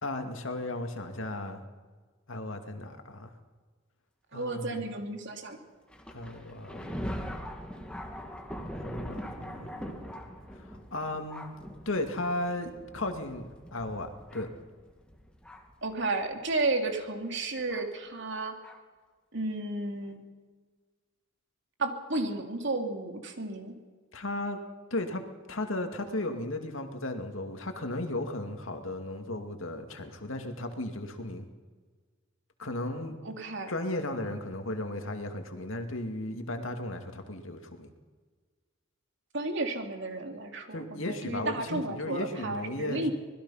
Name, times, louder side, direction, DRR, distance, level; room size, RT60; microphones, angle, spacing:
voice 1, 0.0-1.6 2.3-3.3 4.3-4.8 6.1-6.9 8.8-10.1 10.7-11.5 11.9-14.5 24.1-24.6 24.9-25.2 25.5-31.4 32.6-33.2 33.7-37.9 40.7-43.1, left 1 dB, 75° left, 5 dB, 2.4 m, -35 dB
voice 2, 4.3-5.6 15.8-18.5 19.3-20.2 21.8-23.7 33.2-33.7 39.3-43.1, right 2 dB, 60° right, 4 dB, 3.0 m, -32 dB
Thunder, 5.9-15.8 16.6-16.7 17.7-17.9 18.6-18.8, equal, 5° left, 2.2 m, -42 dB
25.5 x 20.0 x 5.8 m, 1.4 s
head